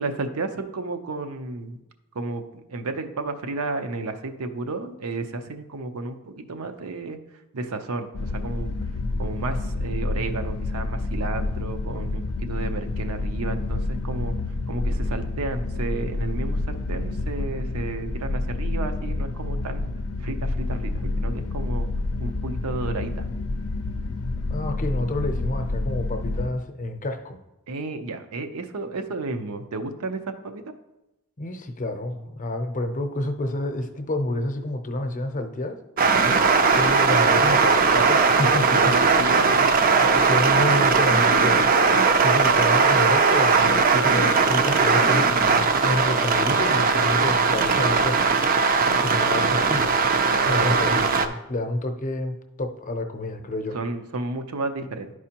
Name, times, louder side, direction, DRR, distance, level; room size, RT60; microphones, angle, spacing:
voice 1, 0.0-1.8 2.1-2.4 2.7-7.2 7.5-8.7 9.2-14.3 14.7-19.9 20.2-21.9 22.2-23.2 27.7-30.7 36.2-36.5 38.7-39.8 50.3-51.1 53.7-55.1, right 3 dB, 85° right, 7 dB, 0.7 m, -32 dB
sound 1, 8.1-26.5, left 2 dB, 75° left, 0.5 m, -28 dB
voice 2, 24.5-27.4 31.4-35.8 36.7-38.9 40.0-41.7 42.2-48.3 49.0-50.0 50.5-53.8, left 1 dB, 35° left, 6 dB, 0.6 m, -29 dB
sound 2, 36.0-51.3, right 4 dB, 40° right, 0.5 m, -19 dB
11.0 x 4.8 x 2.9 m, 0.93 s
head